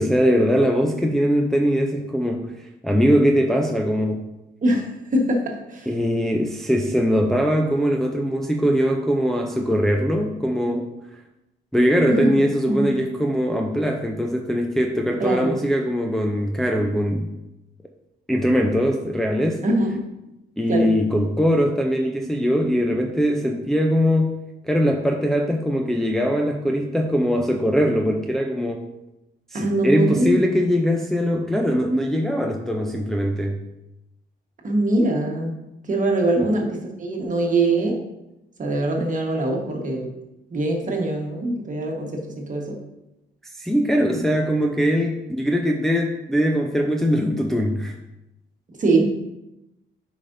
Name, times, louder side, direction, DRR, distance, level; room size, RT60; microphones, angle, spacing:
voice 1, 0.0-2.5 2.8-4.2 5.9-10.9 11.7-17.3 18.3-19.6 20.6-24.3 24.6-28.9 29.5-33.6 36.4-36.6 43.6-47.9, equal, ahead, 1 dB, 0.6 m, -21 dB
voice 2, 4.6-5.9 12.1-12.9 15.2-15.6 19.6-20.0 20.7-20.9 29.5-30.4 34.6-35.5 35.8-38.0 38.6-40.1 40.5-42.7 44.1-44.5 48.7-49.1, right 2 dB, 40° right, 1 dB, 1.4 m, -23 dB
8.3 x 5.1 x 2.7 m, 0.92 s
cardioid pair, 90°, 20 cm